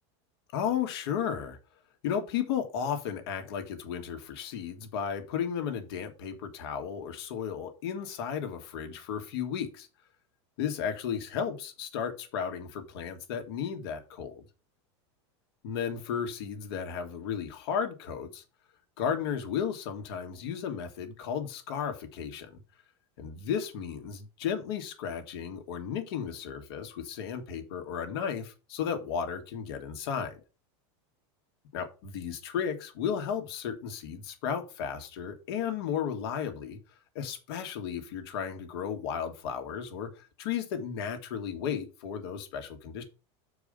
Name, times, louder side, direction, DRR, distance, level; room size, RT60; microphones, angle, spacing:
voice 1, 0.5-1.6 2.0-9.9 10.6-14.4 15.6-18.4 19.0-22.6 23.2-30.4 31.7-36.8 37.1-43.0, left 7 dB, 60° left, 1.7 m, -34 dB
6.8 x 4.7 x 5.0 m
supercardioid pair, 165°, 15 cm